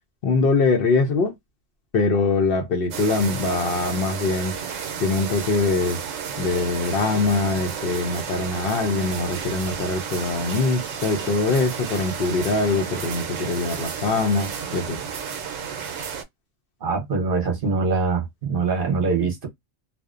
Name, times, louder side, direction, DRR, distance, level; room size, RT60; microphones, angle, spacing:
voice 1, 0.2-1.3 1.9-4.5 5.0-6.0 6.4-15.0, left 3 dB, 60° left, 0.7 m, -23 dB
sound 1, 2.9-16.2, right 7 dB, 85° right, 1.0 m, -32 dB
voice 2, 16.8-19.5, right 4 dB, 50° right, 0.9 m, -23 dB
2.5 x 2.0 x 2.3 m
omnidirectional pair, 1.3 m